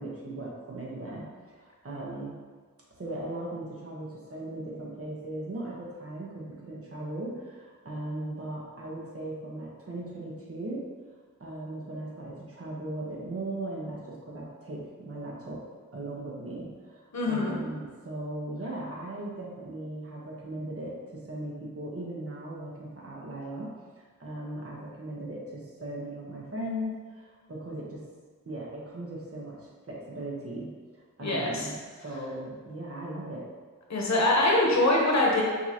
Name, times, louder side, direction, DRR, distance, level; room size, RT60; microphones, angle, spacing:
voice 1, 0.0-2.3 3.0-10.8 11.4-15.6 15.9-23.7 24.2-28.0 28.4-33.4, right 1 dB, 45° right, -4 dB, 1.1 m, -38 dB
voice 2, 17.1-17.5 31.2-31.7 33.9-35.4, left 2 dB, 55° left, -2 dB, 1.0 m, -23 dB
5.3 x 2.8 x 2.9 m, 1.5 s
wide cardioid pair, 70°, 33 cm